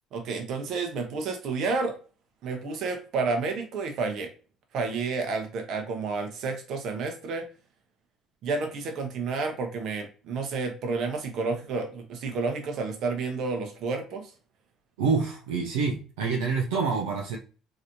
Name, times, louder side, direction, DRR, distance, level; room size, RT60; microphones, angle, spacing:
voice 1, 0.1-2.0 2.4-4.3 4.7-7.4 8.4-14.3, right 4 dB, 65° right, 1.0 m, -30 dB
voice 2, 15.0-17.4, right 5 dB, 85° right, 0.6 m, -27 dB
3.2 x 2.8 x 2.6 m
supercardioid pair, 70°, 0 cm